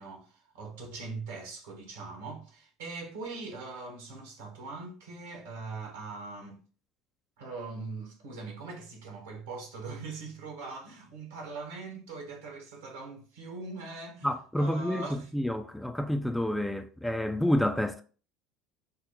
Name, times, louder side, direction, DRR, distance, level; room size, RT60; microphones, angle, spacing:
voice 1, 0.0-6.6 7.4-14.3 14.6-15.3, right 3 dB, 65° right, 1.2 m, -41 dB
voice 2, 14.2-15.1 15.3-18.0, left 1 dB, 5° left, 0.4 m, -29 dB
5.3 x 2.1 x 4.0 m
figure-of-eight pair, 70°, 0 cm